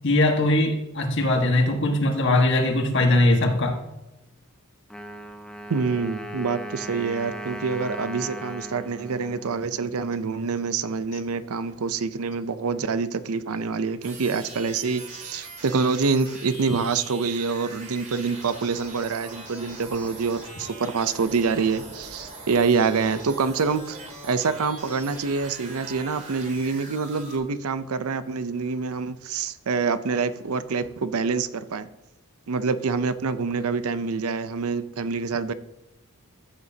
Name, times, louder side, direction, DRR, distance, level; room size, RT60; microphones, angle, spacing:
voice 1, 0.0-3.8, left 2 dB, 55° left, 4 dB, 1.5 m, -21 dB
Wind instrument woodwind instrument, 4.9-10.5, equal, 5° left, 0.6 m, -38 dB
voice 2, 5.7-24.0 24.2-31.9 32.5-35.5, right 4 dB, 80° right, 13 dB, 0.6 m, -26 dB
sound 1, 14.0-27.4, right 2 dB, 35° right, 2.3 m, -41 dB
14.0 x 8.0 x 2.8 m, 0.97 s
head